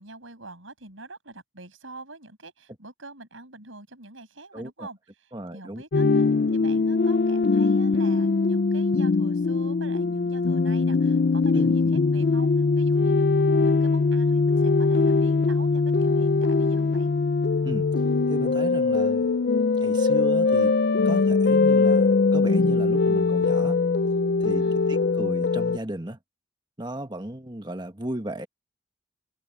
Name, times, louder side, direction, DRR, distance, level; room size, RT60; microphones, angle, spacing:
voice 1, 0.0-6.2 6.5-12.5 12.8-17.1 24.5-24.9, right 2 dB, 90° right, 7.3 m, -45 dB
voice 2, 4.5-4.9 5.3-5.8 11.5-11.7 17.6-17.9 18.3-19.4 19.8-20.7 21.0-23.8 24.4-24.6 24.9-26.2 26.8-28.5, right 1 dB, 20° right, 1.6 m, -35 dB
sound 1, 5.9-25.8, left 4 dB, 55° left, 0.4 m, -21 dB
head